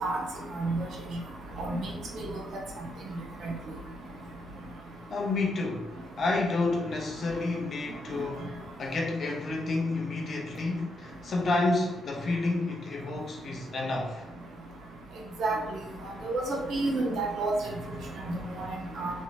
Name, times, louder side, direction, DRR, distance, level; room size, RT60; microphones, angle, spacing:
voice 1, 5.1-8.5 8.8-14.2, left 2 dB, 55° left, 0.8 m, -30 dB
voice 2, 16.7-17.5 18.3-18.7 19.0-19.1, right 3 dB, 65° right, 0.8 m, -29 dB
3.2 x 2.8 x 2.7 m
hypercardioid pair, 45°, 0 cm